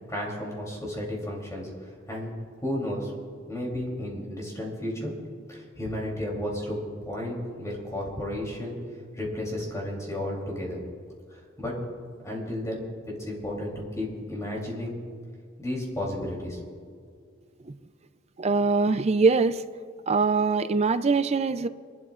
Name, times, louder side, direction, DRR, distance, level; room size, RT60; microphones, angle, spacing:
voice 1, 0.1-2.3 2.6-3.1 3.5-5.1 5.5-6.8 7.0-8.8 9.1-10.8 11.3-11.8 12.2-15.0 15.6-16.6, left 1 dB, 15° left, -2 dB, 3.2 m, -33 dB
voice 2, 18.4-19.6 20.1-21.7, right 4 dB, 35° right, 12 dB, 0.4 m, -23 dB
28.0 x 12.0 x 2.5 m, 2.1 s
head